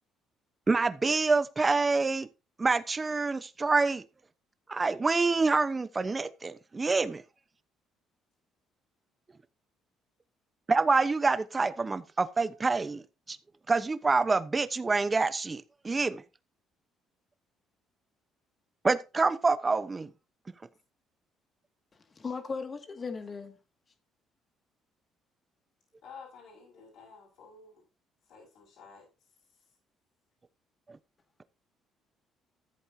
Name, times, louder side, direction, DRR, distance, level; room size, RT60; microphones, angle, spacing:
voice 1, 0.7-2.3 2.6-4.0 4.7-7.2 10.7-13.0 13.3-13.4 13.7-16.2 18.8-20.1 30.9-31.0, right 3 dB, 25° right, 1.0 m, -27 dB
voice 2, 22.1-23.6, left 4 dB, 30° left, 2.2 m, -37 dB
voice 3, 26.0-27.8 28.3-29.1, left 5 dB, 70° left, 6.1 m, -51 dB
14.0 x 8.2 x 2.8 m
cardioid pair, 100°, 0 cm